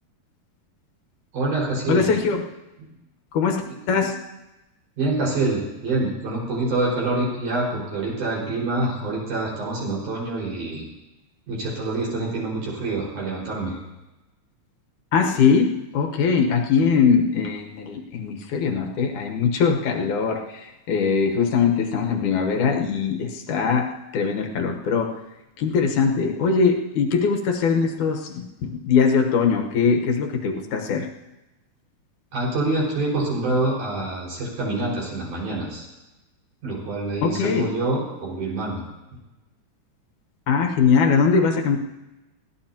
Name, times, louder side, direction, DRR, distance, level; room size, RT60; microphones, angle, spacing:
voice 1, 1.3-2.1 3.6-3.7 5.0-10.9 11.5-13.8 32.3-35.9 36.6-38.8, right 2 dB, 90° right, -4 dB, 6.7 m, -26 dB
voice 2, 1.9-2.5 3.3-4.2 15.1-25.2 25.6-31.1 37.2-37.7 40.5-41.8, left 5 dB, 80° left, 2 dB, 2.7 m, -21 dB
21.5 x 16.5 x 2.9 m, 1.0 s
omnidirectional pair, 3.5 m